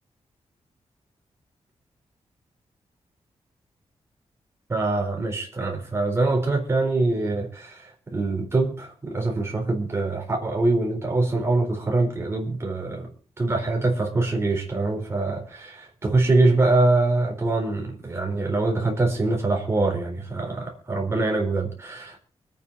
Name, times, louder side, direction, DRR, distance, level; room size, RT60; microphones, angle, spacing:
voice 1, 4.7-13.1 13.4-22.2, right 2 dB, 25° right, 4.2 m, -24 dB
25.0 x 9.2 x 4.2 m
wide cardioid pair, 160°, 11 cm